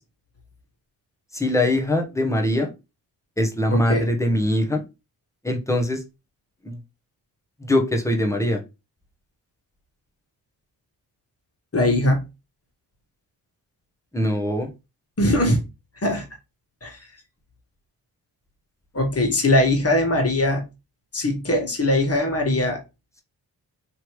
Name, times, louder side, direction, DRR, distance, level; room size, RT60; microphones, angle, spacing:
voice 1, 1.3-2.7 3.4-4.8 5.4-6.0 6.6-6.8 7.6-8.6 14.1-14.7, left 1 dB, 5° left, 1.1 m, -22 dB
voice 2, 3.7-4.1 11.7-12.2 15.2-15.6 16.0-16.2 16.8-17.0 18.9-20.6 21.1-22.8, left 1 dB, 35° left, 1.6 m, -21 dB
3.3 x 2.8 x 3.0 m
supercardioid pair, 50°, 43 cm